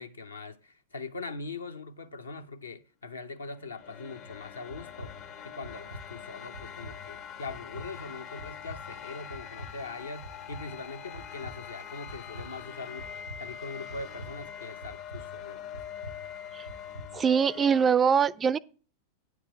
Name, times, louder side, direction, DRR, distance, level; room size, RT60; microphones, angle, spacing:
voice 1, 0.0-5.1 5.4-15.8, left 3 dB, 75° left, 0.7 m, -42 dB
sound 1, 3.4-18.0, left 8 dB, 35° left, 0.5 m, -44 dB
sound 2, 4.3-17.4, equal, 90° right, 1.1 m, -48 dB
voice 2, 17.1-18.6, right 7 dB, 20° right, 0.3 m, -23 dB
9.3 x 4.7 x 6.2 m
figure-of-eight pair, 90°, 0 cm